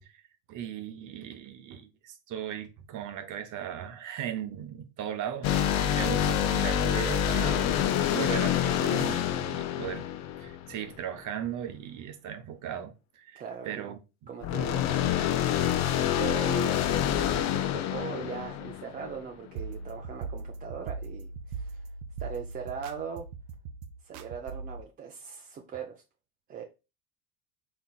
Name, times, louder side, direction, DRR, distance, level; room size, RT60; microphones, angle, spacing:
voice 1, 0.5-10.1 10.4-14.0, right 9 dB, 45° right, 0.7 m, -38 dB
sound 1, 5.4-10.9 14.4-19.2, left 10 dB, 40° left, 0.5 m, -27 dB
voice 2, 13.4-13.9 14.3-21.9 22.2-23.3 24.0-26.0 26.5-26.6, right 7 dB, 20° right, 0.4 m, -40 dB
sound 2, 19.6-24.8, right 4 dB, 75° right, 0.6 m, -39 dB
4.1 x 3.3 x 2.3 m
hypercardioid pair, 95°, 45 cm